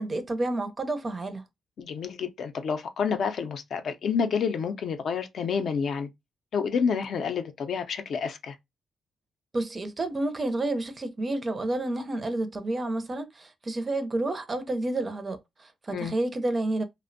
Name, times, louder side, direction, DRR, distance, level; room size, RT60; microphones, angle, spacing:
voice 1, 0.0-1.4 9.5-16.8, right 2 dB, 30° right, 0.4 m, -30 dB
voice 2, 1.8-6.1 6.5-8.6 15.9-16.1, left 6 dB, 65° left, 0.4 m, -29 dB
2.5 x 2.0 x 2.5 m
cardioid pair, 95°, 0 cm